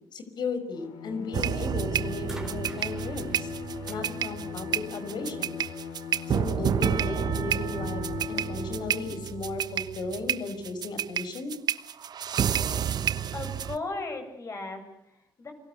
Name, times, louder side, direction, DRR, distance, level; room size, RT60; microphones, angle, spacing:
voice 1, 0.1-3.5 3.9-5.6 6.3-11.6, left 3 dB, 65° left, 9 dB, 5.6 m, -35 dB
Bowed string instrument, 0.7-9.3, left 6 dB, 90° left, 3.8 m, -38 dB
sound 1, 1.3-13.8, right 9 dB, 60° right, 1.2 m, -30 dB
sound 2, 2.2-5.5 6.5-6.6, right 1 dB, 5° right, 3.9 m, -49 dB
voice 2, 13.3-15.5, left 3 dB, 40° left, 6 dB, 7.8 m, -36 dB
29.5 x 22.5 x 8.2 m, 0.77 s
cardioid pair, 90°, 8 cm